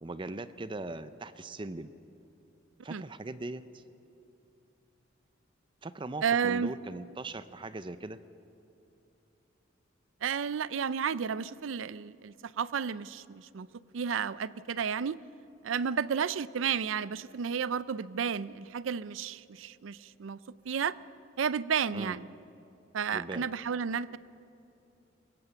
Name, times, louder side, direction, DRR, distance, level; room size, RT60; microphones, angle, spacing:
voice 1, 0.0-1.9 2.8-3.8 5.8-8.2 21.9-22.2 23.1-23.5, right 2 dB, 25° right, 13 dB, 0.5 m, -40 dB
voice 2, 6.2-6.7 10.2-13.7 13.9-15.2 15.6-20.4 20.6-21.0 21.4-22.3 22.9-24.2, right 7 dB, 90° right, 18 dB, 0.5 m, -32 dB
21.5 x 17.5 x 6.9 m, 2.8 s
head